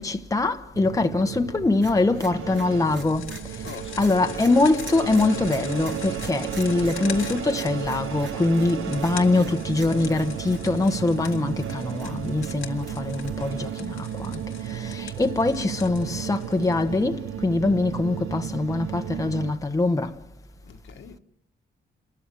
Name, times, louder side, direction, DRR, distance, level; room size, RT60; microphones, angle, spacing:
voice 1, 0.0-3.3 4.0-14.4 14.7-20.1, left 2 dB, 15° left, 1.1 m, -23 dB
sound 1, 0.7-19.5, right 10 dB, 80° right, 1.0 m, -34 dB
sound 2, 1.8-13.8, right 3 dB, 60° right, 3.4 m, -44 dB
sound 3, 2.7-17.0, left 10 dB, 85° left, 1.8 m, -43 dB
voice 2, 3.6-4.7 20.6-21.2, left 7 dB, 70° left, 1.7 m, -43 dB
30.0 x 13.5 x 8.9 m
cardioid pair, 90°, 21 cm